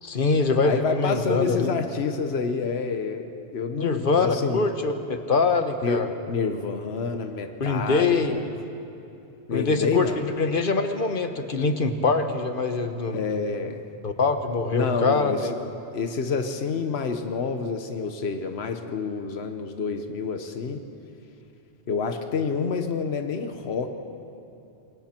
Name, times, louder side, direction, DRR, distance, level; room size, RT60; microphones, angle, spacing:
voice 1, 0.0-1.7 3.8-6.1 7.6-8.5 9.5-13.2 14.0-15.5, left 4 dB, 55° left, 7 dB, 1.3 m, -24 dB
voice 2, 0.6-4.7 5.8-8.4 9.5-10.1 13.1-13.8 14.7-15.4 15.9-20.8 21.9-23.9, left 5 dB, 80° left, 6 dB, 1.3 m, -28 dB
27.0 x 22.0 x 4.4 m, 2.8 s
omnidirectional pair, 1.1 m